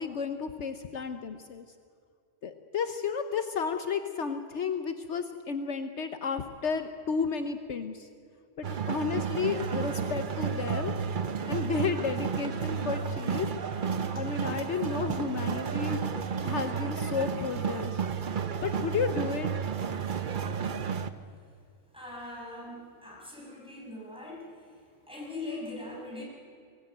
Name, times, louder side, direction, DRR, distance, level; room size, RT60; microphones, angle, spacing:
voice 1, 0.0-1.6 2.4-8.1 8.6-10.9 11.5-13.5 14.1-16.0 16.4-18.0 18.6-19.5, left 6 dB, 70° left, 8 dB, 1.2 m, -32 dB
sound 1, 8.6-21.1, right 6 dB, 45° right, 0.9 m, -32 dB
voice 2, 21.9-24.5 25.1-26.2, left 2 dB, 5° right, -4 dB, 6.5 m, -41 dB
23.0 x 16.5 x 9.2 m, 2.2 s
omnidirectional pair, 1.3 m